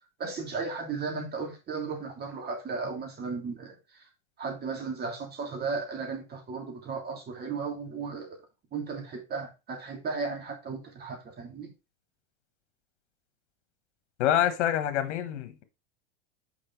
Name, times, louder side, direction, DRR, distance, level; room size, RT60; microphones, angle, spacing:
voice 1, 0.2-4.0 4.4-8.4 8.7-11.7, right 4 dB, 25° right, 3.0 m, -35 dB
voice 2, 14.2-15.6, left 11 dB, 85° left, 1.4 m, -26 dB
6.1 x 5.1 x 4.6 m
supercardioid pair, 135°, 35 cm